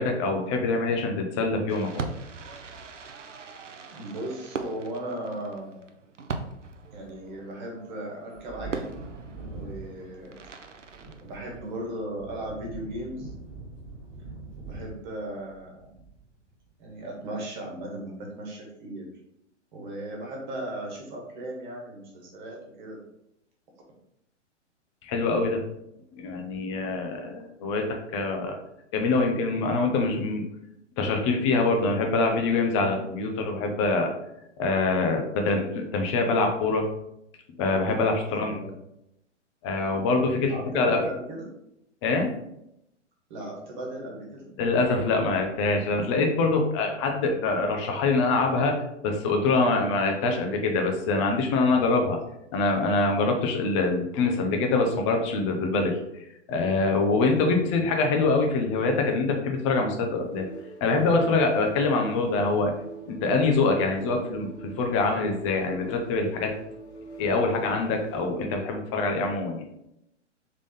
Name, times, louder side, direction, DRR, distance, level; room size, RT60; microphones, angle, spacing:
voice 1, 0.0-2.1 25.0-25.6 26.1-28.6 28.9-30.5 31.0-34.1 34.6-36.8 37.6-38.6 39.6-41.0 42.0-42.3 44.6-48.7 49.0-52.2 52.5-60.5 60.8-62.7 63.1-66.5 67.2-69.6, left 3 dB, 25° left, 3 dB, 0.7 m, -24 dB
Fireworks, 1.7-11.9, right 4 dB, 80° right, 0.6 m, -40 dB
voice 2, 3.9-5.8 6.9-8.9 9.5-10.3 11.2-13.3 14.6-15.9 16.8-19.1 19.7-23.0 38.2-38.8 40.4-41.5 43.3-44.5 57.4-57.8, right 1 dB, 40° right, -1 dB, 1.5 m, -37 dB
Wind / Thunder, 8.3-16.6 16.9-17.0, right 3 dB, 15° right, 1.6 m, -43 dB
sound 1, 60.1-68.5, right 4 dB, 65° left, 1.2 m, -45 dB
3.8 x 3.6 x 3.5 m, 0.81 s
figure-of-eight pair, 115°, 36 cm